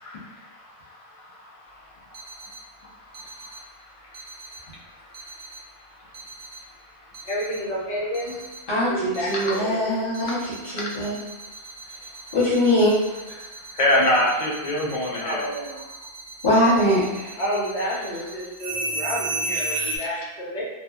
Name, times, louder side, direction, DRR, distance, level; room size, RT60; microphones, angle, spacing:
sound 1, 2.1-2.6 3.1-3.6 4.1-4.6 5.1-5.6 6.1-6.6 7.1-7.6 8.1-8.6 9.1-9.6 10.1-20.0, right 2 dB, 60° right, 0.7 m, -34 dB
voice 1, 7.3-8.4 8.9-9.7 15.2-15.8 17.4-20.6, equal, 80° left, -6 dB, 1.1 m, -29 dB
voice 2, 8.7-10.4 10.7-11.1 12.3-13.4 16.4-17.3, left 1 dB, 25° left, -11 dB, 0.9 m, -22 dB
voice 3, 13.8-15.5 19.5-20.3, left 1 dB, 55° left, -3 dB, 0.3 m, -23 dB
2.8 x 2.1 x 2.3 m, 1.1 s
omnidirectional pair, 1.1 m